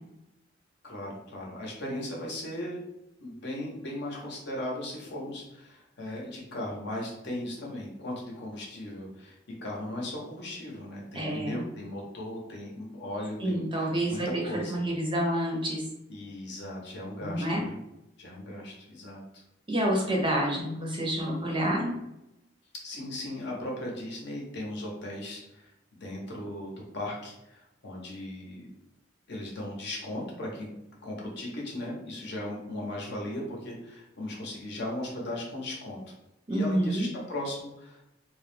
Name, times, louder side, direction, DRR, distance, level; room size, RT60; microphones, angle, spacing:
voice 1, 0.8-2.8 3.2-14.9 16.1-17.8 18.2-19.4 22.8-28.7 29.3-30.7 31.0-36.0 36.5-38.0, left 1 dB, 60° left, -2 dB, 0.7 m, -37 dB
voice 2, 11.1-11.6 13.4-14.3 14.7-15.8 17.2-17.6 19.7-22.0 36.5-37.1, right 1 dB, 25° right, -1 dB, 0.6 m, -28 dB
2.2 x 2.1 x 3.2 m, 0.87 s
head